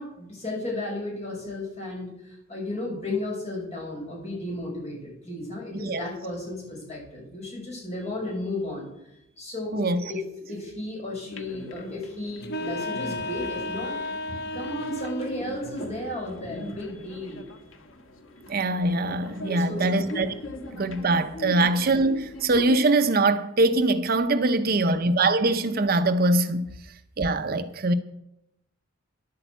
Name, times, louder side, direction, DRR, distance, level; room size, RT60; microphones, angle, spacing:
voice 1, 0.0-8.9 9.4-13.9 14.5-17.4 19.5-20.1 20.8-21.0 21.4-21.6, left 2 dB, 35° left, 6.3 m, -34 dB
voice 2, 9.7-10.0 18.5-20.3 20.7-26.7 27.2-27.9, right 2 dB, 45° right, 0.7 m, -23 dB
sound 1, 11.3-22.8, left 1 dB, 80° left, 1.5 m, -40 dB
sound 2, 12.4-15.4, left 2 dB, 55° left, 0.8 m, -33 dB
11.0 x 8.7 x 8.1 m
head